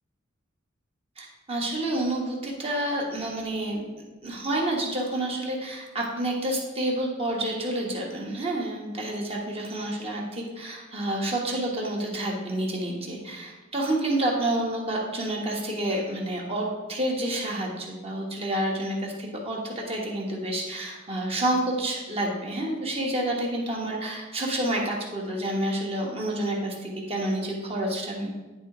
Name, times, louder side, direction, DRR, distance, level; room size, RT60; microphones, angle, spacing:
voice 1, 1.2-3.8 4.2-28.3, right 1 dB, 30° right, -1 dB, 1.3 m, -29 dB
10.0 x 3.5 x 4.9 m, 1.2 s
head